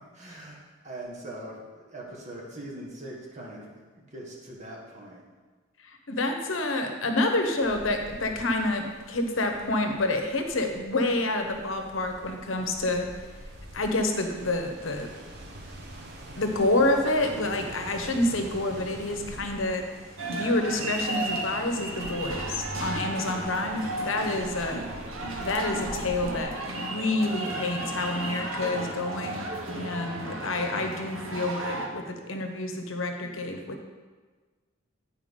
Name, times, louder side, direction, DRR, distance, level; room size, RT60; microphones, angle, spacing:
voice 1, 0.1-3.7 4.0-5.2, right 1 dB, 35° right, -3 dB, 1.6 m, -41 dB
voice 2, 5.8-13.3 13.7-15.1 16.3-24.8 25.4-29.4 29.7-33.8, left 2 dB, 75° left, 4 dB, 0.9 m, -28 dB
sound 1, 7.6-26.4, right 1 dB, 55° right, 1.1 m, -45 dB
sound 2, 20.2-31.9, right 2 dB, 80° right, 1.1 m, -34 dB
9.0 x 4.7 x 5.2 m, 1.4 s
head